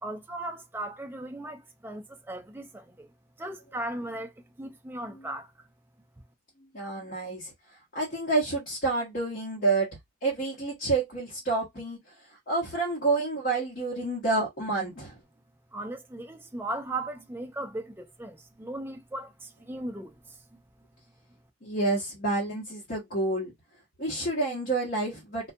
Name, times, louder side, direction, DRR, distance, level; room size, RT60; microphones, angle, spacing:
voice 1, 0.0-3.1 3.4-4.3 4.6-5.5 15.7-20.6, right 1 dB, 10° right, 0.4 m, -37 dB
voice 2, 6.6-15.2 21.6-23.5 24.0-25.5, right 3 dB, 50° left, 0.9 m, -29 dB
2.3 x 2.2 x 2.6 m
head